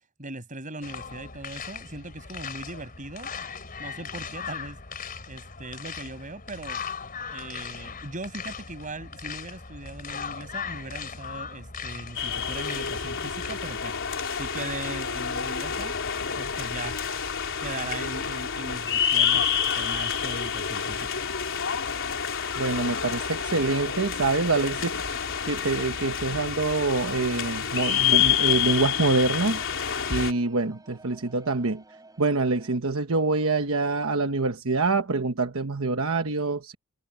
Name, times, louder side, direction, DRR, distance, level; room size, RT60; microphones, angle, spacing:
voice 1, 0.2-3.3 3.8-4.8 5.3-6.8 7.3-14.0 14.4-15.9 16.3-17.0 17.6-21.2, right 2 dB, 40° right, 6.0 m, -39 dB
sound 1, 0.8-13.6, left 6 dB, 40° left, 4.1 m, -38 dB
sound 2, 12.2-30.3, left 8 dB, 65° left, 3.9 m, -28 dB
voice 2, 22.6-29.6 30.1-31.8 32.2-36.7, right 3 dB, 70° right, 1.2 m, -26 dB
sound 3, 25.2-32.8, right 2 dB, 15° right, 6.2 m, -54 dB
head